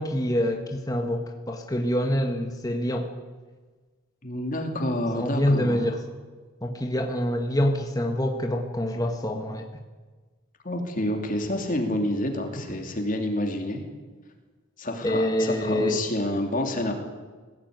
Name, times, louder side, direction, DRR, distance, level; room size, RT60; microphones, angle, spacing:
voice 1, 0.0-3.1 5.1-6.0 6.6-9.7 15.0-16.0, equal, 15° left, 3 dB, 1.5 m, -26 dB
voice 2, 4.2-5.8 10.6-13.8 14.8-16.9, left 1 dB, 40° left, 4 dB, 2.8 m, -28 dB
20.5 x 17.0 x 9.4 m, 1.4 s
head